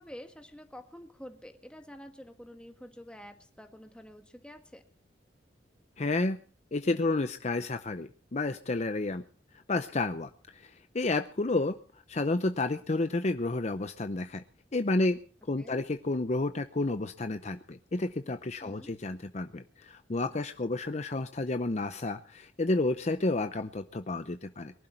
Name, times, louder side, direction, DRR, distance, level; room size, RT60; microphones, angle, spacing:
voice 1, 0.0-4.8 15.6-15.8 18.6-18.9, equal, 5° left, 5 dB, 1.8 m, -48 dB
voice 2, 6.0-6.4 6.7-9.2 9.7-11.8 12.1-14.4 14.7-15.2 15.5-24.7, left 2 dB, 40° left, 9 dB, 0.7 m, -31 dB
23.0 x 12.0 x 4.4 m, 0.40 s
head